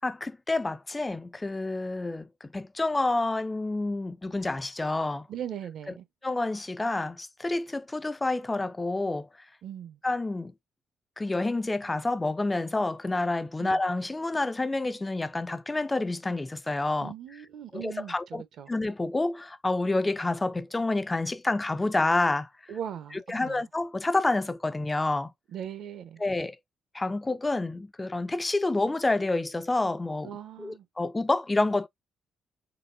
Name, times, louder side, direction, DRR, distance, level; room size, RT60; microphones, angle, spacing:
voice 1, 0.0-5.3 6.2-9.3 10.0-10.5 11.2-17.1 17.7-18.4 18.7-22.7 23.1-25.3 26.2-26.6 26.9-30.3 30.6-31.9, left 2 dB, 20° left, 0.3 m, -28 dB
voice 2, 5.3-6.0 9.6-10.0 13.6-13.8 17.0-18.7 22.7-23.6 25.5-26.2 30.2-30.9, right 9 dB, 70° right, 0.8 m, -39 dB
4.1 x 3.2 x 2.5 m
cardioid pair, 90°, 0 cm